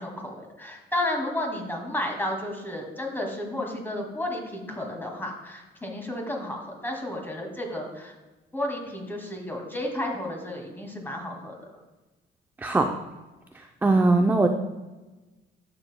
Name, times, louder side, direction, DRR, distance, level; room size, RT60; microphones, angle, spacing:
voice 1, 0.0-8.2 8.5-11.7, left 1 dB, 10° left, 1 dB, 2.2 m, -32 dB
voice 2, 13.8-14.5, right 3 dB, 10° right, 4 dB, 0.5 m, -20 dB
11.5 x 6.9 x 2.2 m, 1.1 s
cardioid pair, 90°, 20 cm